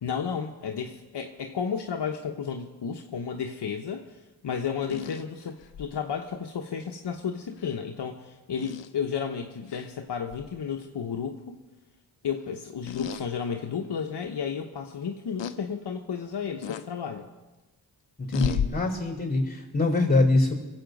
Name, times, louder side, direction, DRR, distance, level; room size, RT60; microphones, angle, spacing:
voice 1, 0.0-11.6 12.2-17.3, left 6 dB, 70° left, 2 dB, 1.1 m, -33 dB
sound 1, 4.8-5.9 7.6-7.8 8.6-8.9 9.7-9.9 10.3-10.5 12.9-13.3 13.8-13.9 15.4-15.6 16.6-16.9 18.3-18.7, left 8 dB, 85° left, 0.8 m, -33 dB
voice 2, 18.2-20.5, left 2 dB, 20° left, 3 dB, 4.2 m, -24 dB
22.0 x 8.1 x 5.3 m, 1.1 s
cardioid pair, 55°, 43 cm